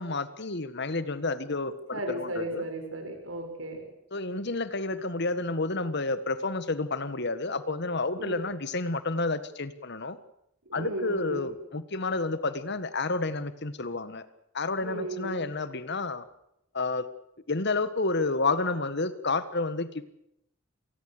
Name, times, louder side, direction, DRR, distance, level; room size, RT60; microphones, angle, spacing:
voice 1, 0.0-2.6 4.1-10.2 10.7-14.2 14.5-16.2 16.7-17.1 17.5-20.0, left 3 dB, 55° left, 14 dB, 1.7 m, -30 dB
voice 2, 1.9-3.9 8.2-8.4 10.7-11.5 14.8-15.5, right 1 dB, 80° right, 5 dB, 7.2 m, -35 dB
27.5 x 20.0 x 6.8 m, 0.79 s
head